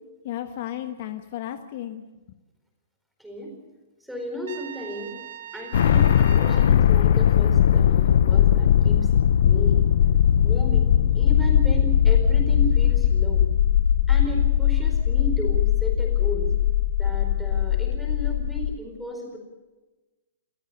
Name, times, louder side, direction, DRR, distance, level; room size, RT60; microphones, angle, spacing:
voice 1, 0.2-2.4, left 12 dB, 40° left, 8 dB, 1.2 m, -34 dB
voice 2, 3.2-3.5 4.1-5.2 5.5-9.0 9.4-9.9 10.4-13.5 14.1-16.5 17.0-19.4, equal, ahead, 1 dB, 4.4 m, -34 dB
Trumpet, 4.5-6.8, right 10 dB, 55° right, 2.4 m, -41 dB
sound 1, 5.7-18.7, left 9 dB, 55° left, 0.6 m, -19 dB
29.0 x 14.0 x 6.8 m, 1.2 s
hypercardioid pair, 175°, 0 cm